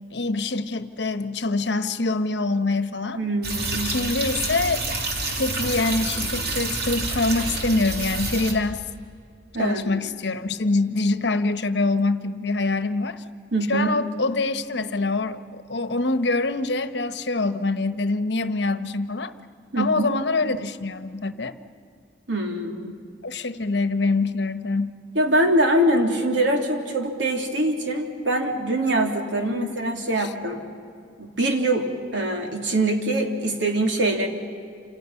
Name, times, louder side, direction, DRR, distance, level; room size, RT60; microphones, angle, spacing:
voice 1, 0.1-3.2 3.8-5.0 5.4-8.8 9.6-13.2 13.7-19.3 19.8-21.6 23.2-25.0 29.5-29.8, left 3 dB, 65° left, 11 dB, 1.1 m, -25 dB
voice 2, 3.1-4.0 9.5-10.1 13.5-13.9 19.7-20.1 22.3-23.0 25.1-30.6 31.2-31.9 32.1-34.3, right 1 dB, 80° right, 2 dB, 3.1 m, -23 dB
sound 1, 3.4-8.5, right 2 dB, 60° right, 3.0 m, -28 dB
29.0 x 27.5 x 5.8 m, 2.4 s
head